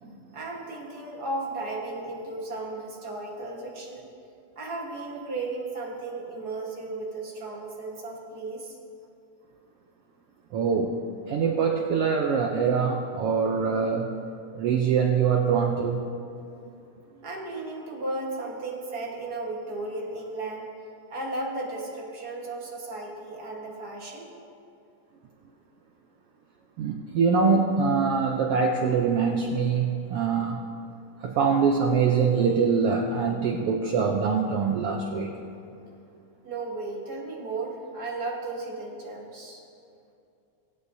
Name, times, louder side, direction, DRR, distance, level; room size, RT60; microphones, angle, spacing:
voice 1, 0.0-4.0 4.6-8.7 17.2-20.7 21.1-24.3 36.4-39.6, right 2 dB, 45° right, -2 dB, 1.4 m, -35 dB
voice 2, 10.5-14.1 14.5-16.1 26.8-30.7 31.2-35.3, right 5 dB, 90° right, 2 dB, 1.3 m, -24 dB
23.0 x 8.6 x 2.7 m, 2.6 s
omnidirectional pair, 3.5 m